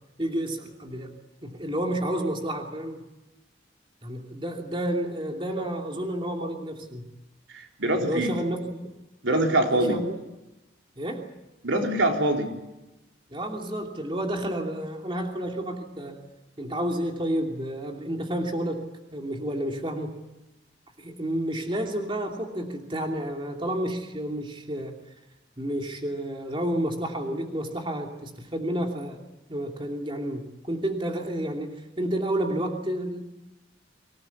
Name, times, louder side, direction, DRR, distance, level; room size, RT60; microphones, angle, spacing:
voice 1, 0.2-1.1 1.4-3.0 4.0-7.0 8.0-8.9 9.7-10.1 11.0-11.3 13.3-16.2 16.6-18.8 19.1-20.2 21.0-24.9 25.6-29.2 29.5-33.2, right 1 dB, 25° right, 2 dB, 2.9 m, -30 dB
voice 2, 7.5-8.3 9.2-10.0 11.6-12.5, right 1 dB, 80° right, 2 dB, 4.0 m, -24 dB
25.5 x 18.5 x 9.6 m, 0.99 s
head